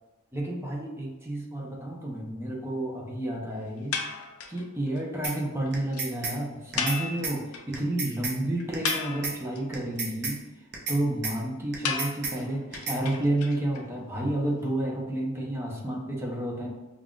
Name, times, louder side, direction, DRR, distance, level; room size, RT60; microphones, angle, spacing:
voice 1, 0.3-4.0 4.5-10.4 10.9-16.7, right 1 dB, 10° right, -2 dB, 0.7 m, -30 dB
sound 1, 3.9-4.6 5.0-5.1 5.2-5.4 5.7-5.8 5.9-6.1 6.8-7.8 8.1-8.2 8.6-9.6 11.8-13.8, left 5 dB, 80° left, 0.5 m, -33 dB
sound 2, 5.2-5.4 5.7-6.4 6.7-7.0 7.2-7.4 7.7-8.4 8.7-9.0 9.2-9.4 9.7-10.4 10.7-11.0 11.2-11.4 11.7-12.4 12.7-13.0, right 4 dB, 55° right, 0.7 m, -32 dB
5.4 x 2.5 x 2.4 m, 1.2 s
head